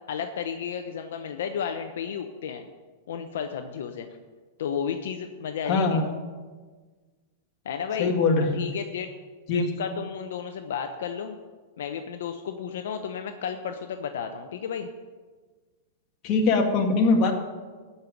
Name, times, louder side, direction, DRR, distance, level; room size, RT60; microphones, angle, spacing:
voice 1, 0.1-2.7 3.1-4.1 4.6-6.0 7.6-8.1 8.5-9.1 9.5-11.3 11.8-14.9, left 7 dB, 75° left, 6 dB, 0.8 m, -32 dB
voice 2, 5.7-6.0 8.0-8.7 9.5-9.8 16.2-17.3, left 3 dB, 40° left, 2 dB, 2.1 m, -22 dB
13.0 x 5.6 x 9.1 m, 1.4 s
hypercardioid pair, 130°, 0 cm